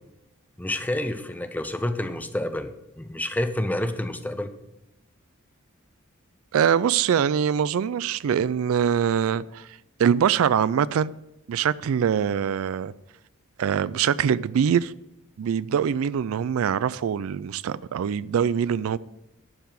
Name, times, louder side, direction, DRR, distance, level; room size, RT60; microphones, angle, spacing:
voice 1, 0.6-4.5, left 1 dB, 10° left, 0.6 m, -29 dB
voice 2, 6.5-11.1 11.5-12.9 13.6-14.9 15.4-19.0, right 8 dB, 75° right, 0.3 m, -23 dB
12.0 x 4.7 x 7.5 m
head